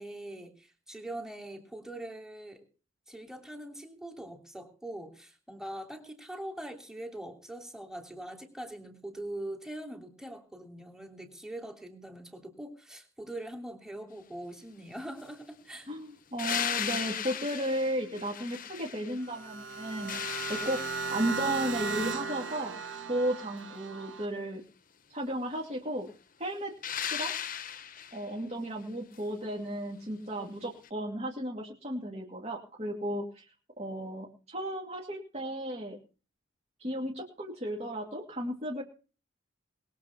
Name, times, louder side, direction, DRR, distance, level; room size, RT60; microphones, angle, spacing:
voice 1, 0.0-2.6 3.1-15.9, right 1 dB, 5° right, 4 dB, 3.0 m, -42 dB
voice 2, 15.9-20.8 21.1-22.7 23.1-24.6 25.1-26.1 26.4-26.7 27.1-27.4 28.1-33.4 33.8-36.0 36.8-38.8, right 1 dB, 35° right, -1 dB, 2.6 m, -34 dB
sound 1, 16.4-19.3 19.7-21.5 26.8-28.3 30.8-30.9, left 9 dB, 45° left, 1.0 m, -36 dB
sound 2, 19.2-24.3, right 4 dB, 70° right, 1.7 m, -36 dB
21.0 x 7.4 x 5.9 m, 0.36 s
head